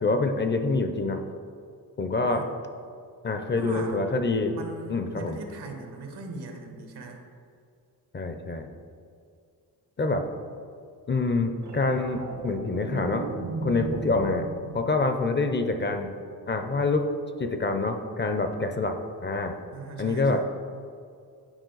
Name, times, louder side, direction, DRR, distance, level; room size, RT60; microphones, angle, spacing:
voice 1, 0.0-1.2 2.0-2.5 3.2-4.5 4.9-5.4 8.1-8.7 10.0-10.2 11.1-13.3 13.6-14.5 14.7-16.1 16.5-17.0 17.4-19.0 19.2-19.6 20.0-20.4, left 3 dB, 30° left, 6 dB, 0.4 m, -26 dB
voice 2, 3.5-4.0 4.5-7.2 19.7-20.4, right 2 dB, 85° right, 3 dB, 1.1 m, -40 dB
sound 1, 11.6-16.1 18.5-18.7, right 3 dB, 50° right, 0.5 m, -37 dB
8.9 x 4.4 x 3.9 m, 2.3 s
wide cardioid pair, 125°, 38 cm